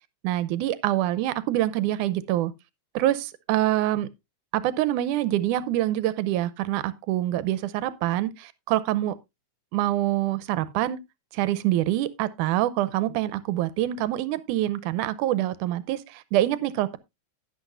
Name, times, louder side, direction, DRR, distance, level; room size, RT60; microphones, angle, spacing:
voice 1, 0.2-2.5 2.9-4.1 4.5-9.2 9.7-11.0 11.3-17.0, right 14 dB, 85° right, 2.2 m, -25 dB
11.5 x 10.5 x 2.5 m
omnidirectional pair, 3.5 m